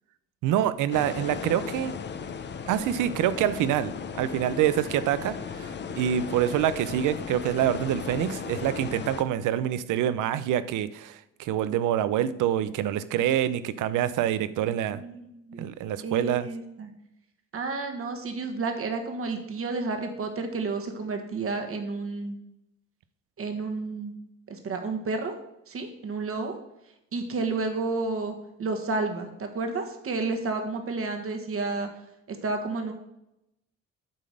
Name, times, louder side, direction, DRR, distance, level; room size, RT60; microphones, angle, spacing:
voice 1, 0.4-1.9 2.7-5.7 6.0-15.0 15.6-16.5, right 11 dB, 85° right, 15 dB, 0.6 m, -26 dB
sound 1, 0.9-9.2, left 6 dB, 35° left, 0.7 m, -36 dB
voice 2, 14.9-15.7 16.0-16.9 17.5-22.4 23.4-24.1 24.5-25.3 25.7-26.6 27.1-31.9 32.3-32.9, right 3 dB, 45° right, 4 dB, 1.5 m, -31 dB
8.9 x 3.9 x 6.3 m, 0.85 s
cardioid pair, 90°, 30 cm